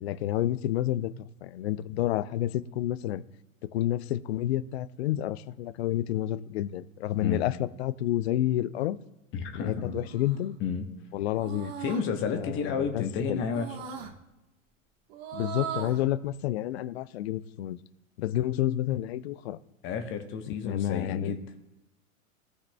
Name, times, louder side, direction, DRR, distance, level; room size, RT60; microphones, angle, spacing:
voice 1, 0.0-1.1 1.4-3.2 3.6-9.0 9.5-10.6 11.1-11.7 12.3-13.4 15.3-17.8 18.2-19.6 20.6-21.3, left 13 dB, 50° left, 17 dB, 0.4 m, -29 dB
voice 2, 9.3-10.0 10.6-10.8 11.8-13.7 14.0-14.1 19.8-21.4, left 6 dB, 30° left, 6 dB, 1.0 m, -31 dB
sound 1, 10.0-10.5 11.3-12.0 13.5-14.1 15.1-16.0, right 8 dB, 50° right, 1.3 m, -38 dB
17.0 x 5.7 x 2.2 m, 0.98 s
figure-of-eight pair, 95°, 41 cm